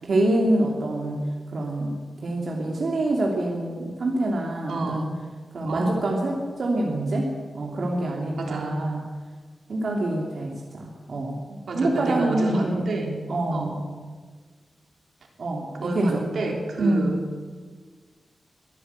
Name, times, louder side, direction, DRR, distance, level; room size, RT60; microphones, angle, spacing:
voice 1, 0.0-1.2 1.5-5.0 5.5-9.1 9.7-12.9 13.3-13.8 15.4-16.2 16.8-17.2, right 1 dB, 55° right, -1 dB, 2.8 m, -26 dB
voice 2, 4.7-5.1 5.6-5.9 8.4-8.8 11.7-13.2 13.5-13.8 15.8-17.2, right 3 dB, 80° right, 1 dB, 4.1 m, -29 dB
23.0 x 14.0 x 8.2 m, 1.5 s
wide cardioid pair, 150°, 0 cm